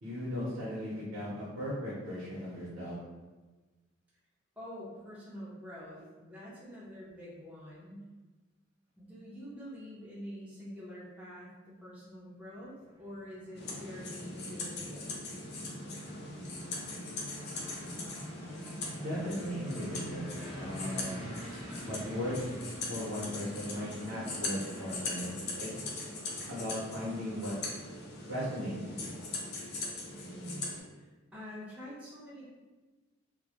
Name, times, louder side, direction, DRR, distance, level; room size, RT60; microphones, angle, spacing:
voice 1, 0.0-3.0 19.0-21.3 21.8-22.3 22.9-25.9 26.5-27.5 28.3-29.1, equal, 70° right, -9 dB, 0.7 m, -37 dB
voice 2, 4.6-8.1 9.0-15.1 30.2-32.4, equal, 5° right, -8 dB, 0.5 m, -46 dB
sound 1, 12.7-29.9, equal, 25° left, 1.0 m, -48 dB
sound 2, 13.6-30.8, left 2 dB, 50° left, 0.4 m, -41 dB
2.1 x 2.1 x 2.8 m, 1.2 s
head